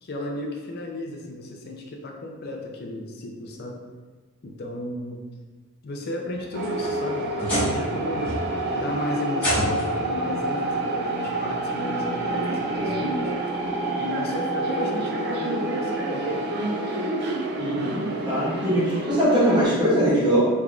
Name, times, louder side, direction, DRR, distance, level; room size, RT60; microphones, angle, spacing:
voice 1, 0.0-3.9 4.4-5.2 5.8-8.4 8.7-13.4 13.7-16.4, left 1 dB, 45° left, 1 dB, 0.4 m, -34 dB
sound 1, 6.3-7.9 8.2-8.7 9.3-10.0 11.2-11.3 11.9-12.0 13.6-13.7, equal, 5° left, 1.3 m, -28 dB
sound 2, 6.5-19.6, right 2 dB, 50° right, 0.4 m, -28 dB
Wind instrument woodwind instrument, 10.8-17.4, right 4 dB, 75° right, 1.0 m, -38 dB
voice 2, 17.6-20.5, equal, 20° right, -8 dB, 0.7 m, -21 dB
3.6 x 3.3 x 2.3 m, 1.4 s
head